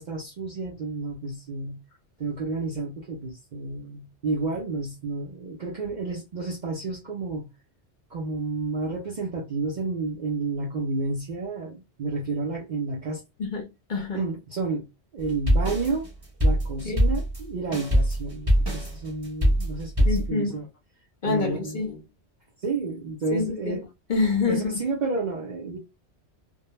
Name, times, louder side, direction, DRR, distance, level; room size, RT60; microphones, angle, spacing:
voice 1, 0.0-1.8 2.2-7.5 8.1-13.2 14.1-14.9 15.1-16.1 16.4-20.7 21.3-21.8 22.6-23.8 24.5-25.8, right 3 dB, 55° right, 0.5 m, -31 dB
voice 2, 13.4-14.2 16.8-17.0 20.0-20.5 21.2-22.0 23.3-23.8 24.1-24.7, left 4 dB, 50° left, 0.7 m, -26 dB
sound 1, 15.2-20.3, equal, 20° right, 0.9 m, -23 dB
2.2 x 2.1 x 3.0 m
omnidirectional pair, 1.2 m